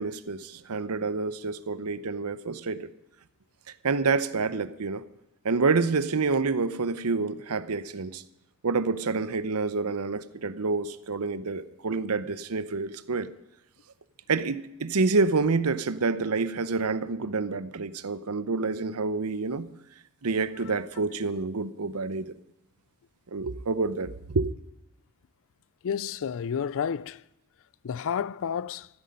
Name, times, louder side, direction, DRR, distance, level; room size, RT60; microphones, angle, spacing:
voice 1, 0.0-2.9 3.8-5.0 5.4-8.2 8.6-13.3 14.3-19.7 20.2-22.2 23.3-24.5, right 4 dB, 75° right, 0.8 m, -28 dB
voice 2, 25.8-27.2 27.8-28.9, left 7 dB, 60° left, 0.4 m, -31 dB
14.5 x 13.0 x 5.4 m
head